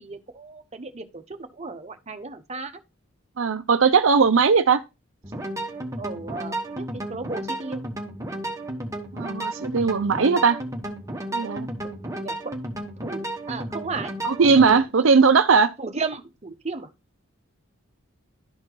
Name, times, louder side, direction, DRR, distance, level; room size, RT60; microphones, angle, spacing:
voice 1, 0.0-2.7 6.0-7.9 12.1-12.5 13.0-14.1 15.8-16.9, right 4 dB, 35° right, 0.9 m, -35 dB
voice 2, 3.4-4.8 9.1-10.6 11.3-11.7 14.2-15.7, right 5 dB, 75° right, 0.6 m, -18 dB
sound 1, 5.2-14.8, right 1 dB, 15° right, 1.2 m, -33 dB
12.0 x 4.3 x 3.0 m
head